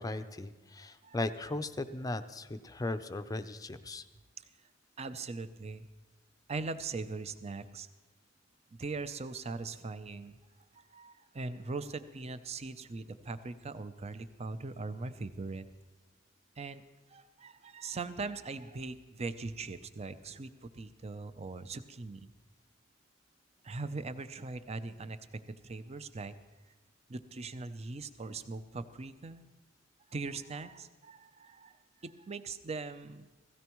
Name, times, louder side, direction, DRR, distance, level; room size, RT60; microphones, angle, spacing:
voice 1, 0.0-4.0, left 2 dB, 20° left, 10 dB, 0.5 m, -37 dB
voice 2, 0.8-1.2 5.0-5.9 6.5-7.9 8.7-10.4 10.7-15.7 16.6-16.8 17.1-22.3 23.6-26.3 27.1-29.4 30.1-33.4, right 3 dB, 35° right, 12 dB, 0.5 m, -41 dB
16.5 x 16.0 x 3.1 m, 1.2 s
head